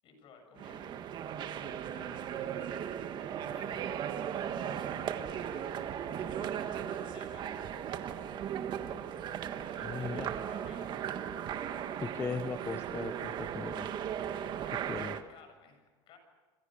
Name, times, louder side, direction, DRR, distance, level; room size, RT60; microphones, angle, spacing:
voice 1, 0.0-1.0 1.5-3.9 4.4-5.7 6.4-8.1 9.6-11.2 14.4-16.2, left 5 dB, 45° left, 6 dB, 7.5 m, -57 dB
sound 1, 0.6-15.2, right 9 dB, 35° right, 1.5 m, -37 dB
voice 2, 9.8-10.3 12.0-13.9 14.9-15.1, left 5 dB, 20° left, 10 dB, 0.8 m, -38 dB
28.0 x 25.5 x 6.5 m, 1.3 s
cardioid pair, 145°, 12 cm